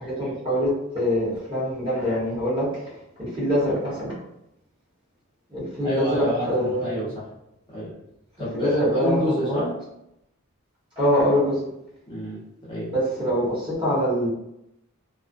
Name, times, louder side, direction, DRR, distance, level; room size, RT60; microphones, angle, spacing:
voice 1, 0.0-4.1 5.5-6.9 8.5-9.6 11.0-11.6 12.9-14.3, equal, 20° right, -9 dB, 1.0 m, -24 dB
voice 2, 5.8-7.3 7.7-8.0 8.4-9.8 12.1-12.9, left 1 dB, 20° left, -9 dB, 0.7 m, -29 dB
2.4 x 2.0 x 2.4 m, 0.84 s
head